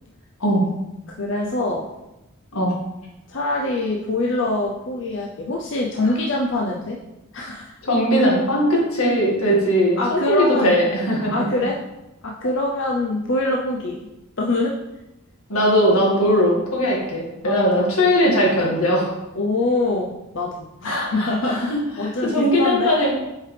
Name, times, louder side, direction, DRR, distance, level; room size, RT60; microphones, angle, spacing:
voice 1, 1.1-1.9 3.3-7.0 7.3-7.7 10.0-10.8 11.3-11.8 12.2-14.0 14.4-14.8 17.4-17.9 19.4-21.7 22.0-22.9, left 2 dB, 55° left, -2 dB, 0.6 m, -24 dB
voice 2, 7.8-11.3 15.5-19.1 20.8-21.8 22.2-23.1, equal, 90° left, -3 dB, 2.0 m, -19 dB
7.3 x 4.9 x 3.4 m, 0.96 s
head